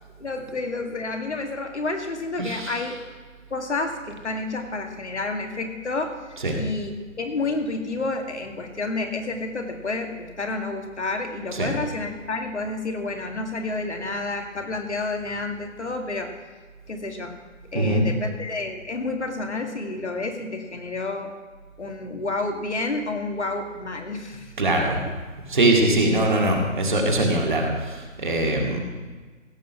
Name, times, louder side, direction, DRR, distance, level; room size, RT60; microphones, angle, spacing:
voice 1, 0.2-2.9 3.5-16.3 16.9-17.3 17.7-21.3 21.8-24.5 25.0-25.1, left 3 dB, 60° left, 4 dB, 2.1 m, -30 dB
voice 2, 2.4-2.8 6.4-6.6 11.5-11.7 17.7-18.0 24.6-25.0 25.5-28.8, right 1 dB, 35° right, 0 dB, 2.0 m, -22 dB
16.0 x 7.7 x 6.0 m, 1.4 s
figure-of-eight pair, 165°, 39 cm